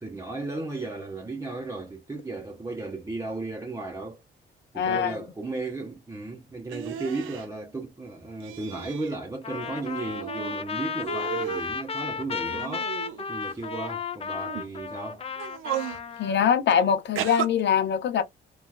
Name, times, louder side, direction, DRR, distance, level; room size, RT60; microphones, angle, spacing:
voice 1, 0.0-4.2 4.7-12.9 13.3-15.2, right 2 dB, 15° right, 0.6 m, -35 dB
voice 2, 4.7-5.2 16.2-18.2, left 8 dB, 65° left, 0.8 m, -23 dB
sound 1, 6.7-7.5 8.4-9.2 9.5-10.6 11.0-11.7 12.4-13.5 14.3-14.6 15.3-16.0 17.2-17.5, right 10 dB, 85° right, 0.5 m, -34 dB
Trumpet, 9.4-16.5, left 6 dB, 30° left, 0.5 m, -34 dB
3.3 x 2.3 x 2.2 m
cardioid pair, 90°, 20 cm